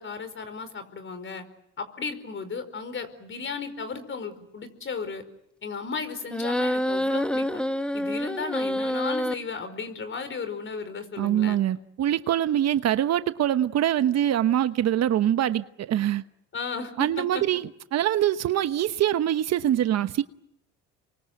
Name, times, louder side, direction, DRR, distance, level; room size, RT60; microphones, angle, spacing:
voice 1, 0.0-1.4 1.8-5.2 5.6-7.6 7.9-11.6 16.5-17.2, left 5 dB, 40° left, 4.9 m, -35 dB
sound 1, 6.3-9.3, equal, 5° left, 1.2 m, -27 dB
voice 2, 11.2-16.2 17.0-20.2, right 11 dB, 55° right, 1.0 m, -24 dB
29.0 x 23.5 x 7.9 m
cardioid pair, 95°, 31 cm